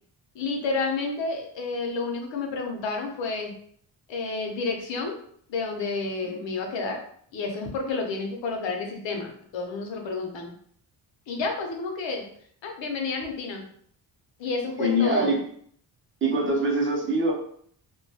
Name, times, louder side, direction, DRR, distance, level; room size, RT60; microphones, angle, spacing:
voice 1, 0.3-3.5 4.1-5.2 5.5-7.0 7.3-10.5 11.3-12.2 12.6-13.6 14.4-15.4, left 3 dB, 75° left, 2 dB, 0.7 m, -30 dB
voice 2, 14.8-15.4 16.2-17.3, equal, 25° right, -3 dB, 0.5 m, -23 dB
2.2 x 2.2 x 2.7 m, 0.63 s
wide cardioid pair, 165°, 46 cm